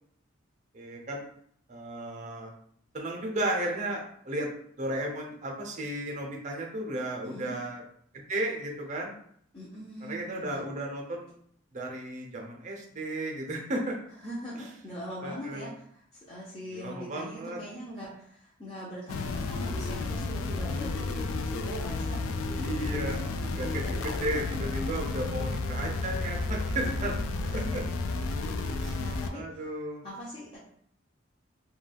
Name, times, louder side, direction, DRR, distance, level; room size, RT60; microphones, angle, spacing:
voice 1, 0.7-1.3 1.7-2.5 2.9-4.5 4.8-7.8 8.1-9.1 10.0-11.3 11.7-14.0 15.2-15.7 16.7-17.6 22.6-23.2 23.5-27.1 27.7-27.8 28.8-29.0 29.3-30.0, right 1 dB, 35° right, 1 dB, 0.5 m, -34 dB
voice 2, 7.2-7.6 9.5-10.7 14.2-23.3 23.6-24.0 26.8-29.7 30.0-30.6, equal, 25° left, -7 dB, 0.5 m, -42 dB
sound 1, 19.1-29.3, left 3 dB, 90° left, 0.3 m, -32 dB
2.2 x 2.2 x 3.3 m, 0.65 s
head